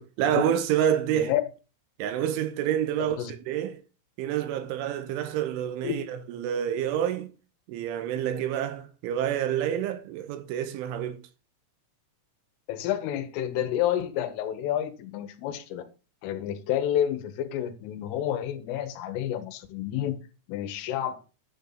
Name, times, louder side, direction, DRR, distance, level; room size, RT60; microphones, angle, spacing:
voice 1, 0.0-1.3 2.0-3.2 3.5-3.8 4.2-7.3 7.7-11.2, right 10 dB, 80° right, 3.2 m, -28 dB
voice 2, 1.1-1.4 3.0-3.3 5.8-6.0 12.7-15.9 16.2-20.2 20.5-21.2, left 11 dB, 80° left, 3.5 m, -29 dB
11.0 x 6.9 x 3.9 m
omnidirectional pair, 5.8 m